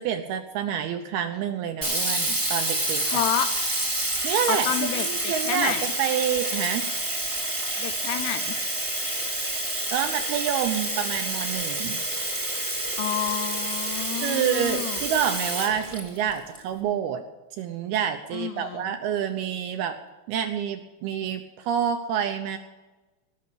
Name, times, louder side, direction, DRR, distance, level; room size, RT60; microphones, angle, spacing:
voice 1, 0.0-3.2 4.2-4.7 4.9-6.9 9.9-12.1 14.2-17.2 17.6-20.0 20.3-22.6, right 9 dB, 75° right, 6 dB, 2.4 m, -28 dB
Sink (filling or washing), 1.8-16.6, right 1 dB, 20° right, 0.8 m, -28 dB
voice 2, 3.1-3.5 4.5-5.9 7.8-8.6 13.0-15.0 18.3-19.0, left 11 dB, 80° left, 11 dB, 2.5 m, -30 dB
19.0 x 6.4 x 8.5 m, 1.1 s
omnidirectional pair, 5.2 m